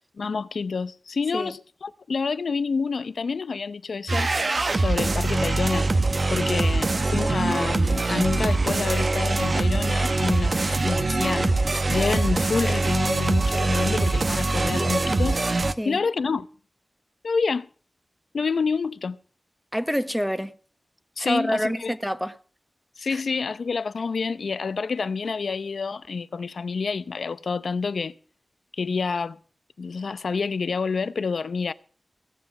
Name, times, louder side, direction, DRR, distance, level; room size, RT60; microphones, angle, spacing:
voice 1, 0.2-4.3 4.8-5.9 6.3-15.4 15.9-16.5 17.2-17.7 18.3-19.2 21.2-21.9 23.0-28.1 28.8-29.4 29.8-31.7, left 5 dB, 85° left, 0.6 m, -28 dB
sound 1, 4.1-15.7, right 2 dB, 55° right, 0.9 m, -23 dB
voice 2, 19.7-20.5 21.2-22.4 23.1-23.2, equal, ahead, 1.1 m, -27 dB
17.5 x 7.8 x 7.1 m
cardioid pair, 50°, 0 cm